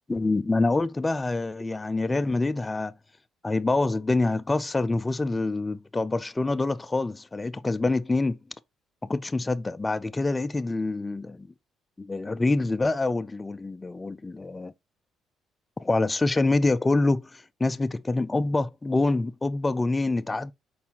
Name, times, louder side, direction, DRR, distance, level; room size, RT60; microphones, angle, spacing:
voice 1, 0.1-2.9 3.4-8.4 9.1-11.5 12.0-14.7 15.8-20.5, left 2 dB, 20° left, 0.4 m, -26 dB
4.7 x 4.1 x 2.8 m
cardioid pair, 85°, 0 cm